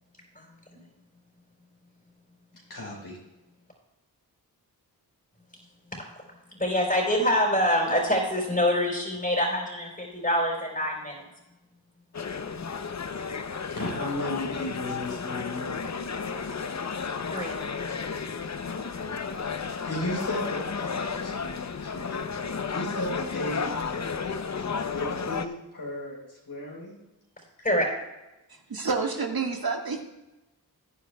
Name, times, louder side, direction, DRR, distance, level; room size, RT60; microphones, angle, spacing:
voice 1, 0.3-0.8 6.5-11.3 17.3-17.5 27.6-27.8, equal, 20° left, -4 dB, 4.3 m, -25 dB
voice 2, 2.7-3.2 13.7-16.0 19.6-27.0, left 1 dB, 65° left, -3 dB, 4.1 m, -36 dB
sound 1, 12.1-25.5, left 5 dB, 45° left, 0.8 m, -33 dB
voice 3, 28.5-30.0, right 4 dB, 65° right, 2 dB, 1.7 m, -29 dB
18.0 x 9.3 x 2.3 m, 0.99 s
cardioid pair, 45°, 40 cm